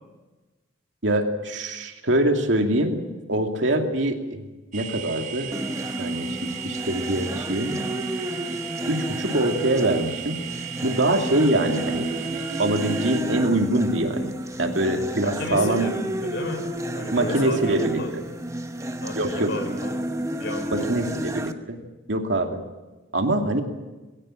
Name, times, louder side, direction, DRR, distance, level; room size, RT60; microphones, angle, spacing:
voice 1, 1.0-3.0 3.3-4.4 4.7-5.5 6.0-7.8 8.9-10.4 10.8-12.1 12.6-14.3 14.6-15.9 17.1-18.0 19.1-19.5 20.7-21.8 22.1-22.6 23.1-23.6, right 1 dB, 70° right, 3 dB, 2.6 m, -24 dB
sound 1, 4.7-13.2, right 10 dB, 45° right, 3.9 m, -36 dB
sound 2, 5.5-21.5, right 1 dB, 15° right, 1.0 m, -31 dB
voice 2, 15.2-18.1 19.0-20.0 20.4-21.1, left 1 dB, 65° left, 6 dB, 5.0 m, -33 dB
21.0 x 17.0 x 8.9 m, 1.2 s
head